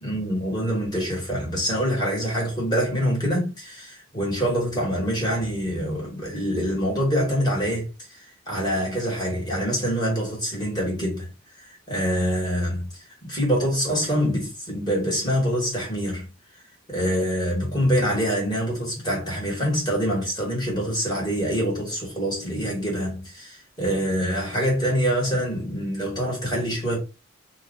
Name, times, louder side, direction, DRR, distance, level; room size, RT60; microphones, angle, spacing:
voice 1, 0.0-11.3 11.5-16.3 16.9-27.0, equal, 20° left, 1.5 m, -25 dB
2.8 x 2.3 x 3.8 m
head